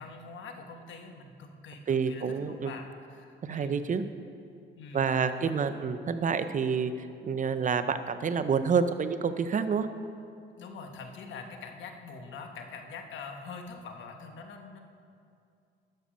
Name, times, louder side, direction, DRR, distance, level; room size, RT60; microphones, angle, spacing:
voice 1, 0.0-3.8 4.8-5.7 10.6-14.9, left 4 dB, 70° left, 4 dB, 1.1 m, -44 dB
voice 2, 1.9-2.7 3.4-4.0 4.9-9.9, right 6 dB, 40° right, 11 dB, 0.5 m, -28 dB
12.0 x 6.9 x 5.1 m, 2.4 s
cardioid pair, 90°, 20 cm